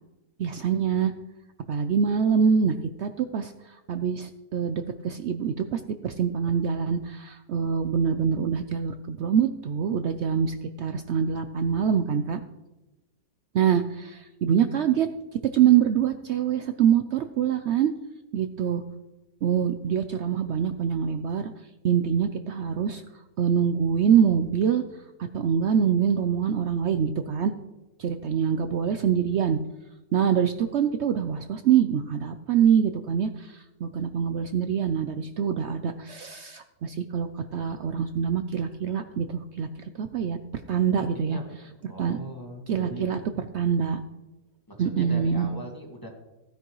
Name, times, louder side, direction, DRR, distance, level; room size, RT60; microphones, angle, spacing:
voice 1, 0.4-1.1 1.7-12.4 13.5-15.1 15.5-17.9 18.3-18.8 19.4-21.5 21.8-23.0 23.4-24.8 25.3-27.5 28.0-29.6 30.1-40.4 40.7-41.4 42.0-42.2 42.7-43.2 43.5-44.0 44.8-45.5, right 7 dB, 70° right, 9 dB, 0.6 m, -25 dB
voice 2, 41.0-41.4 41.9-43.1 44.7-46.1, equal, 15° left, 1 dB, 1.7 m, -40 dB
15.5 x 10.0 x 3.1 m, 1.1 s
omnidirectional pair, 1.7 m